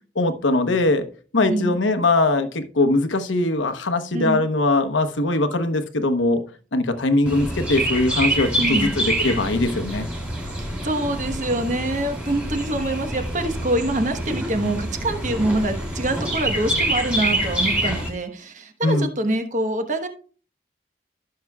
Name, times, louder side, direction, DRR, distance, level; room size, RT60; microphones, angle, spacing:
voice 1, 0.2-1.1 1.3-6.4 6.7-10.1 18.8-19.1, left 2 dB, 85° left, 8 dB, 1.0 m, -21 dB
voice 2, 1.5-1.8 4.1-4.4 8.6-8.9 10.6-20.1, right 1 dB, 40° right, 7 dB, 1.1 m, -25 dB
Chirp tweet, 7.3-18.1, right 1 dB, 5° right, 2.8 m, -26 dB
15.5 x 6.7 x 2.3 m, 0.40 s
head